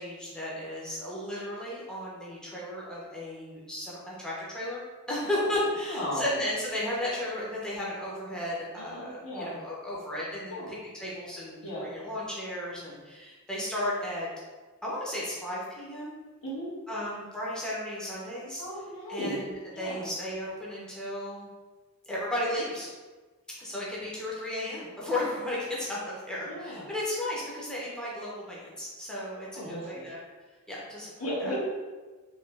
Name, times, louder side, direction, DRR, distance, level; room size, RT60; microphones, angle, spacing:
voice 1, 0.0-14.3 14.8-16.1 16.9-18.6 19.1-21.5 22.1-22.9 23.6-30.2 30.7-31.5, left 1 dB, 5° left, -7 dB, 0.7 m, -34 dB
voice 2, 5.9-6.2 8.8-9.6 10.5-10.7 11.6-11.9 16.4-16.7 18.6-19.4 19.7-20.1 26.5-26.9 29.5-30.1 31.2-31.6, equal, 75° left, -7 dB, 1.3 m, -35 dB
3.1 x 2.9 x 3.3 m, 1.3 s
head